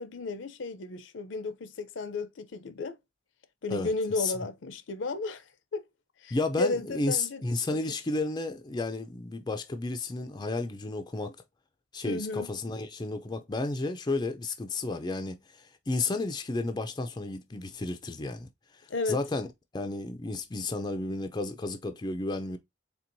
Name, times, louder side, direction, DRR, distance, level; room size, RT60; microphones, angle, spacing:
voice 1, 0.0-3.0 3.6-5.4 5.7-5.8 6.2-7.6 12.0-12.5 18.9-19.2, left 3 dB, 70° left, 0.6 m, -33 dB
voice 2, 3.7-4.3 6.3-11.4 11.9-18.5 19.1-19.5 19.7-22.6, left 3 dB, 20° left, 0.4 m, -32 dB
4.4 x 3.4 x 2.6 m
head